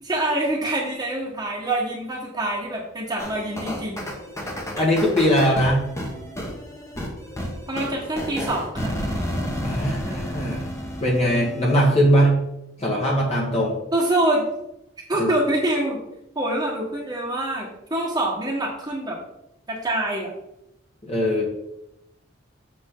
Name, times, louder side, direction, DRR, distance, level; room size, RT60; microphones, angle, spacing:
voice 1, 0.0-4.0 7.7-8.9 13.9-14.4 15.1-16.0 16.3-19.2 19.7-20.3, right 1 dB, 20° right, -4 dB, 1.4 m, -25 dB
sound 1, 3.2-12.0, equal, 15° left, 1.3 m, -31 dB
voice 2, 4.4-5.8 9.6-10.7 11.0-12.4 12.8-13.8 15.2-15.3 21.0-21.5, equal, 35° left, -3 dB, 1.6 m, -20 dB
7.6 x 6.9 x 3.8 m, 0.84 s
head